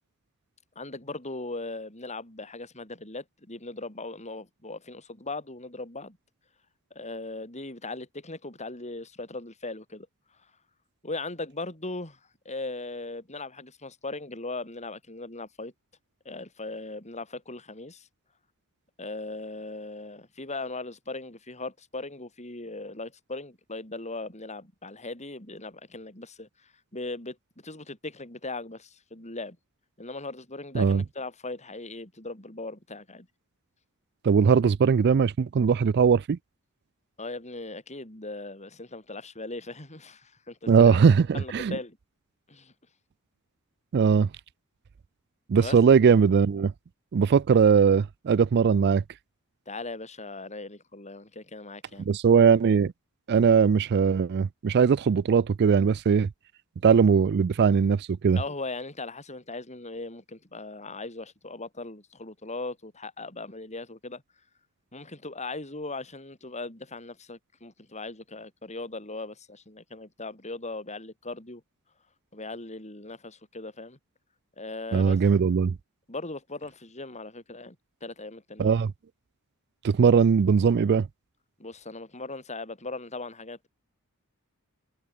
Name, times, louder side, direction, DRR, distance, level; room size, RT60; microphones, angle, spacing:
voice 1, 0.8-6.2 6.9-10.1 11.0-12.2 12.5-15.7 16.3-18.1 19.0-29.6 30.0-33.3 37.2-41.0 41.3-42.0 42.5-42.7 45.6-45.8 49.7-52.1 58.3-64.2 64.9-71.6 72.3-74.0 74.6-75.2 76.1-78.7 81.6-83.7, left 2 dB, 30° left, 6.9 m, -39 dB
voice 2, 34.2-36.4 40.7-41.8 43.9-44.3 45.5-46.7 47.1-49.0 52.1-52.9 53.3-56.3 56.8-58.4 74.9-75.8 78.6-78.9 79.8-81.1, right 6 dB, 50° right, 0.4 m, -20 dB
open air
head